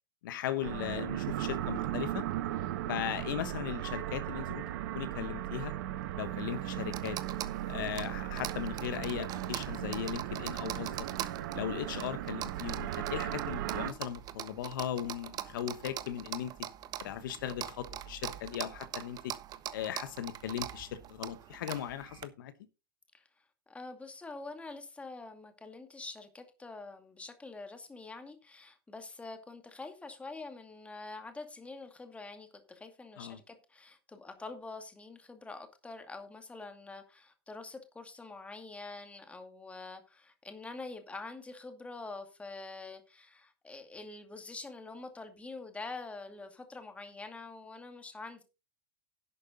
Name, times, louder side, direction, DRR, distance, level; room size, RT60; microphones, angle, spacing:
voice 1, 0.2-2.2 2.9-4.6 4.9-5.7 6.2-7.2 7.7-11.1 11.5-16.5 17.0-19.3 19.7-22.5 33.2-33.4, left 10 dB, 65° left, 1.1 m, -38 dB
sound 1, 0.6-13.9, right 13 dB, 60° right, 1.3 m, -37 dB
sound 2, 6.2-22.2, right 12 dB, 35° right, 1.0 m, -43 dB
voice 2, 23.7-48.4, left 3 dB, 10° left, 2.3 m, -46 dB
11.5 x 8.4 x 3.8 m
hypercardioid pair, 105°, 11 cm